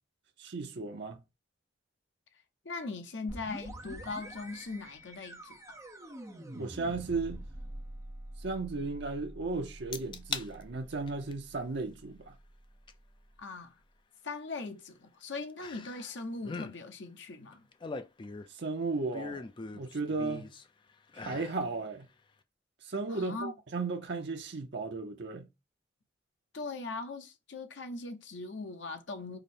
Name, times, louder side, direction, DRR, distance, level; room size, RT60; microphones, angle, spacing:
voice 1, 0.4-1.2 6.5-7.5 8.4-12.4 18.5-19.4 19.7-20.5 21.2-22.1 22.8-25.5, right 3 dB, 65° right, 0.7 m, -35 dB
voice 2, 2.6-5.8 13.4-13.7 14.2-17.6 23.1-23.5 26.5-29.4, left 3 dB, 70° left, 0.8 m, -40 dB
sound 1, 3.3-12.8, right 1 dB, 15° right, 0.7 m, -46 dB
sound 2, 9.9-10.5 10.9-11.3 12.9-13.0 15.6-16.1 16.4-16.7 17.5-18.6 19.1-20.6 21.1-21.6 22.0-22.1, left 4 dB, 25° left, 0.4 m, -40 dB
5.0 x 2.1 x 4.2 m
head